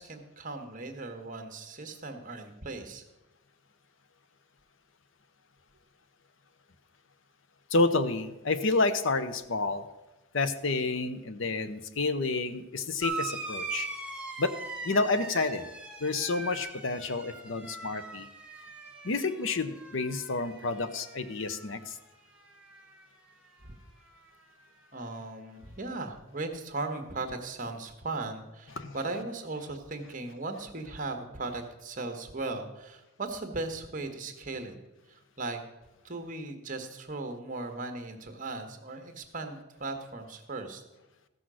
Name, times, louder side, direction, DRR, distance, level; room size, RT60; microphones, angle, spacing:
voice 1, 0.0-3.0 23.6-23.7 24.9-34.8 35.1-35.6 36.0-40.8, right 3 dB, 40° right, 6 dB, 1.3 m, -37 dB
voice 2, 7.7-9.8 10.3-13.9 14.4-14.5 14.8-15.7 16.0-18.3 19.0-22.0 28.8-29.0, left 3 dB, 70° left, 12 dB, 0.8 m, -29 dB
sound 1, 13.0-22.0 22.3-23.1 24.2-24.3, right 4 dB, 5° right, 1.1 m, -41 dB
15.0 x 6.2 x 6.2 m, 1.0 s
head